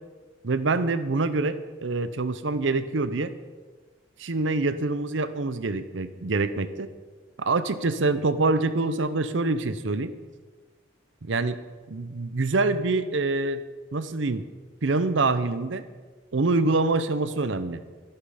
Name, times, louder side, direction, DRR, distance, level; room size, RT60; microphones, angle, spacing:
voice 1, 0.4-3.3 4.2-6.9 7.4-10.1 11.2-11.6 11.9-13.6 13.9-14.5 14.8-15.8 16.3-17.8, right 3 dB, 75° right, 13 dB, 0.7 m, -25 dB
12.5 x 11.5 x 5.0 m, 1.4 s
head